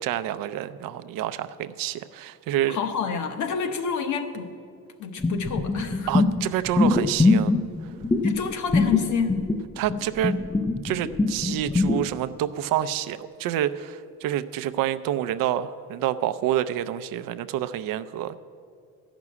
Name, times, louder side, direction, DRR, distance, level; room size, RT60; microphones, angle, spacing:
voice 1, 0.0-2.8 6.1-7.5 9.8-10.3 10.8-18.4, right 12 dB, 65° right, 11 dB, 0.5 m, -28 dB
voice 2, 2.7-4.5 5.0-6.1 8.2-9.4, left 6 dB, 50° left, 7 dB, 1.1 m, -28 dB
sound 1, 5.2-12.0, left 3 dB, 10° left, 0.4 m, -22 dB
13.5 x 6.1 x 9.6 m, 2.3 s
cardioid pair, 170°, 37 cm